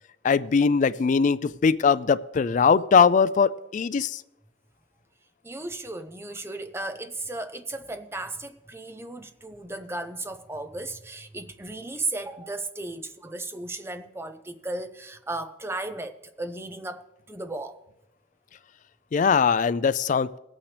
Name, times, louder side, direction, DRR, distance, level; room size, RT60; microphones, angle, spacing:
voice 1, 0.2-4.2 19.1-20.4, left 5 dB, 40° left, 0.3 m, -21 dB
voice 2, 5.4-17.8, right 2 dB, 15° right, 0.6 m, -35 dB
21.5 x 8.7 x 3.3 m
head